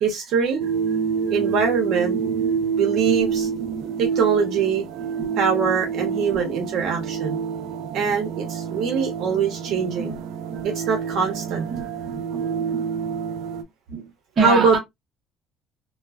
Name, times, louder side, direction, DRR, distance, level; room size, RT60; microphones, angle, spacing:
voice 1, 0.0-0.6 1.3-2.2 2.8-3.5 4.0-4.8 5.4-7.4 7.9-10.1 10.6-11.7 14.4-14.8, right 5 dB, 55° right, 0.8 m, -23 dB
sound 1, 0.6-13.6, right 6 dB, 80° right, 0.3 m, -27 dB
voice 2, 2.1-2.6 3.0-4.1 5.0-5.3 5.6-6.4 9.7-10.2 10.5-10.7 11.4-12.8 13.9-14.1 14.4-14.8, right 4 dB, 25° right, 0.9 m, -30 dB
2.3 x 2.3 x 2.3 m
cardioid pair, 170°, 0 cm